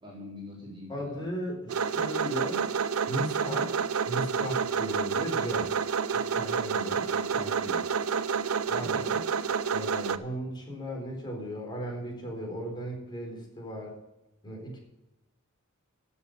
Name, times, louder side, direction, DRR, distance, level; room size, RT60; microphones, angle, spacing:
voice 1, 0.0-1.2 7.1-7.8 8.8-9.0, left 1 dB, 25° right, -4 dB, 4.0 m, -43 dB
voice 2, 0.9-2.6 3.1-3.8 4.1-5.7 6.3-7.1 8.7-9.2 9.7-13.9 14.4-14.8, equal, 20° left, 0 dB, 4.1 m, -36 dB
sound 1, 1.7-10.2, right 6 dB, 85° right, 0.7 m, -29 dB
14.0 x 7.2 x 6.6 m, 0.92 s
head